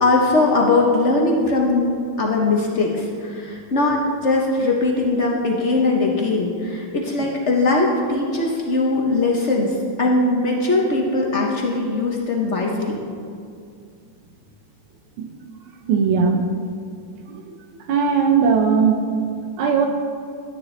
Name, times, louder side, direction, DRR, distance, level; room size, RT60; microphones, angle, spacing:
voice 1, 0.0-13.0, left 2 dB, 50° left, -1 dB, 0.9 m, -20 dB
voice 2, 15.9-16.4 17.9-19.0 19.6-19.9, right 6 dB, 90° right, 4 dB, 1.8 m, -18 dB
12.5 x 9.2 x 3.2 m, 2.3 s
omnidirectional pair, 2.2 m